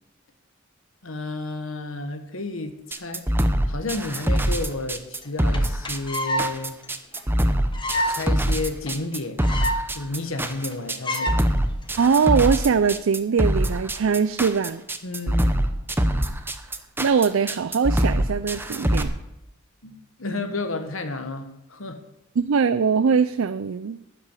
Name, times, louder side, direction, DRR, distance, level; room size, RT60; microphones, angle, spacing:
voice 1, 1.0-3.2 3.7-6.8 8.1-9.4 9.9-11.4 15.0-15.5 19.8-22.0, left 2 dB, 75° left, 7 dB, 1.4 m, -31 dB
sound 1, 2.9-19.0, right 1 dB, 10° right, 0.8 m, -23 dB
sound 2, 5.2-5.3 5.5-5.6 5.8-6.5 6.8-6.9 7.2-7.3 7.7-8.2 8.5-8.6 8.9-9.0 9.1-9.8 10.1-10.2 10.4-10.7 11.0-11.4 12.0-12.3, equal, 25° left, 1.3 m, -26 dB
voice 2, 12.0-14.8 17.0-19.1 20.3-20.4 22.4-24.0, right 5 dB, 70° right, 12 dB, 0.5 m, -21 dB
12.5 x 5.9 x 9.3 m, 0.89 s
head